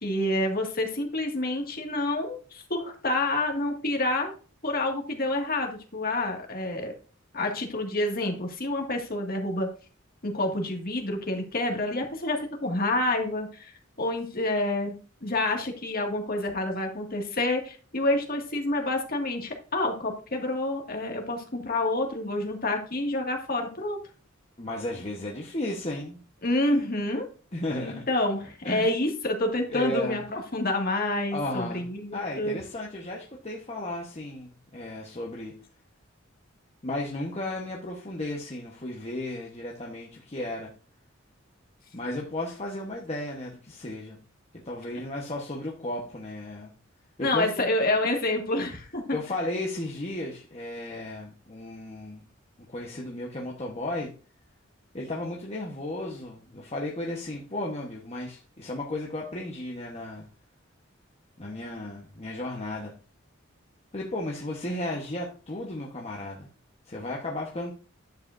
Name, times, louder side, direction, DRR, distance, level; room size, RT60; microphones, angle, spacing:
voice 1, 0.0-4.3 4.6-6.9 7.3-9.7 10.2-14.9 15.2-24.0 26.4-27.2 27.8-32.6 47.2-49.0, left 2 dB, 50° left, 2 dB, 2.1 m, -28 dB
voice 2, 24.6-26.2 27.5-28.1 28.6-28.9 29.7-30.2 31.3-35.5 36.8-40.7 41.9-44.2 44.6-46.7 47.2-47.7 49.1-52.2 52.7-54.1 54.9-60.3 61.4-62.9 63.9-66.5 66.9-67.7, left 1 dB, 35° left, -1 dB, 1.2 m, -34 dB
10.5 x 7.6 x 2.7 m, 0.37 s
head